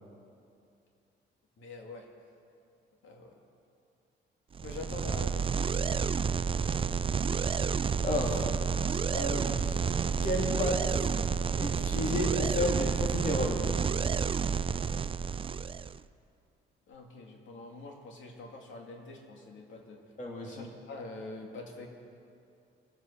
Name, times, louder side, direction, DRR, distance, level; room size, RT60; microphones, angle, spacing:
voice 1, 1.6-2.1 3.0-3.3 4.6-5.7 16.9-20.0 20.4-21.9, left 2 dB, 75° left, 1 dB, 2.5 m, -45 dB
sound 1, 4.5-16.0, right 6 dB, 25° right, 0.4 m, -30 dB
voice 2, 8.0-8.5 9.1-9.8 10.2-10.8 11.6-13.7 20.2-20.6, left 1 dB, 40° left, -1 dB, 3.3 m, -32 dB
24.0 x 8.5 x 6.5 m, 2.6 s
cardioid pair, 90°, 20 cm